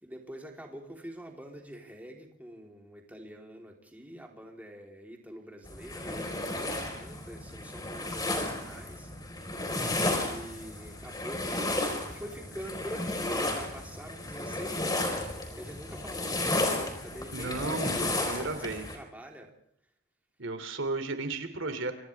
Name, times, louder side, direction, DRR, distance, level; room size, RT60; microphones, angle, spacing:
voice 1, 0.0-9.1 10.1-11.8 12.1-19.5, equal, 10° right, 1 dB, 3.5 m, -45 dB
sound 1, 5.6-19.0, left 2 dB, 20° left, 4.5 m, -33 dB
voice 2, 17.3-18.9 20.4-22.0, right 3 dB, 65° right, 8 dB, 2.8 m, -34 dB
29.5 x 25.5 x 3.5 m, 0.70 s
head